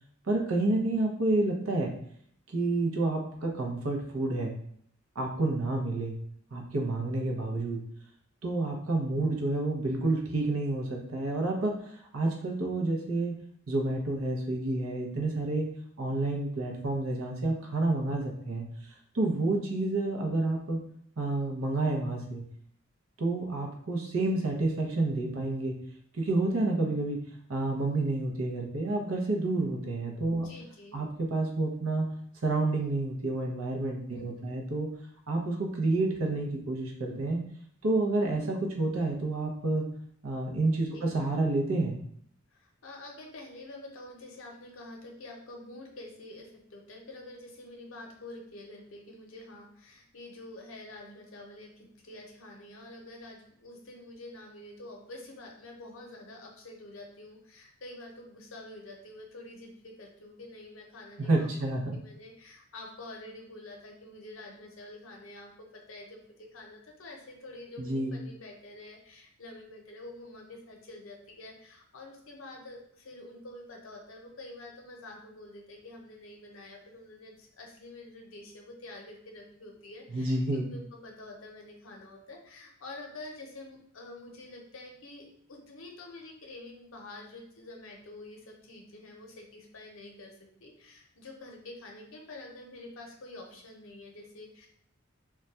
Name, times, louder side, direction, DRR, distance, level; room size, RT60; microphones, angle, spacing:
voice 1, 0.3-1.9 2.5-4.5 5.2-6.2 6.5-7.8 8.4-13.3 13.7-15.7 16.0-18.7 19.1-20.8 21.2-22.4 23.2-25.8 26.1-27.2 27.5-30.5 30.9-32.1 32.4-34.9 35.3-37.4 37.8-39.9 40.2-42.0 61.2-62.0 67.8-68.2 80.1-80.7, right 2 dB, 85° right, 0 dB, 0.7 m, -29 dB
voice 2, 30.4-31.0 34.1-34.6 40.9-41.1 42.5-94.7, left 2 dB, 70° left, 1 dB, 0.7 m, -47 dB
2.3 x 2.2 x 3.9 m, 0.67 s
head